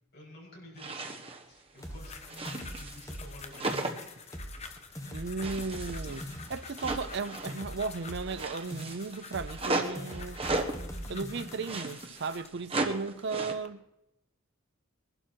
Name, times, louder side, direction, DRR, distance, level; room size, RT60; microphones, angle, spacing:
voice 1, 0.1-3.9, left 1 dB, 50° left, 7.4 m, -50 dB
sound 1, 0.8-1.4 1.8-3.2 3.5-4.2 4.6-4.8 5.4-7.7 8.0-10.8 11.5-13.5, right 2 dB, 25° right, 1.2 m, -36 dB
sound 2, 1.8-12.6 13.2-13.7, left 5 dB, 30° left, 1.1 m, -49 dB
sound 3, 1.8-3.5 3.7-4.7 5.0-8.5 8.7-9.7 10.0-11.8, equal, 15° left, 1.5 m, -42 dB
voice 2, 5.1-10.4 11.1-13.8, right 4 dB, 55° right, 0.5 m, -35 dB
21.5 x 12.0 x 4.6 m
head